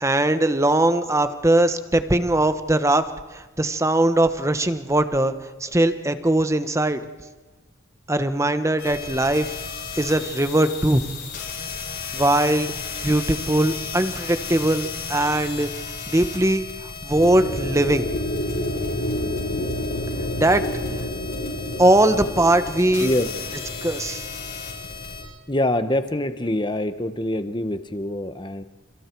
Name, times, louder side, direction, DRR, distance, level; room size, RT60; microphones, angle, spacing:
voice 1, 0.0-3.0 3.3-5.3 5.6-7.0 8.1-9.5 9.9-11.0 12.1-12.7 13.0-15.7 16.1-16.6 17.0-18.1 20.4-20.6 21.8-23.1 23.8-24.2, right 1 dB, 15° right, 10 dB, 1.1 m, -20 dB
sound 1, 8.8-25.2, left 5 dB, 55° left, 7.8 m, -35 dB
sound 2, 17.1-25.2, left 1 dB, 80° left, 6.3 m, -29 dB
voice 2, 25.5-28.6, left 1 dB, 20° left, 10 dB, 1.1 m, -25 dB
30.0 x 29.5 x 4.7 m, 1.3 s
head